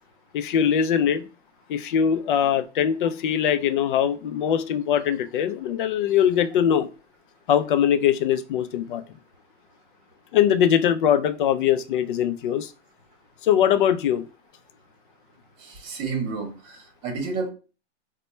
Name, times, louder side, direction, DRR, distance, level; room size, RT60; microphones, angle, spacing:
voice 1, 0.3-1.2 1.7-6.9 7.5-9.0 10.3-12.7 13.4-14.3, left 9 dB, 45° left, 10 dB, 0.4 m, -22 dB
voice 2, 15.6-17.5, right 4 dB, 35° right, 3 dB, 1.0 m, -30 dB
4.1 x 2.2 x 3.1 m, 0.33 s
hypercardioid pair, 145°, 35 cm